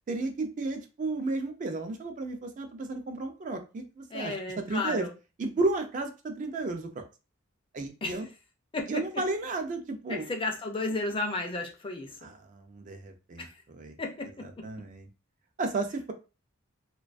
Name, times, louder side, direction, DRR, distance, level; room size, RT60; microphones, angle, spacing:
voice 1, 0.1-5.1 5.4-7.0 7.7-8.3 8.9-10.3 12.2-13.9 14.6-15.1 15.6-16.1, right 2 dB, 40° right, 6 dB, 0.3 m, -33 dB
voice 2, 4.1-5.1 8.0-8.3 8.7-9.0 10.1-12.2 13.4-13.5 14.0-14.6, left 2 dB, 25° left, 2 dB, 0.4 m, -33 dB
2.3 x 2.2 x 2.4 m, 0.31 s
head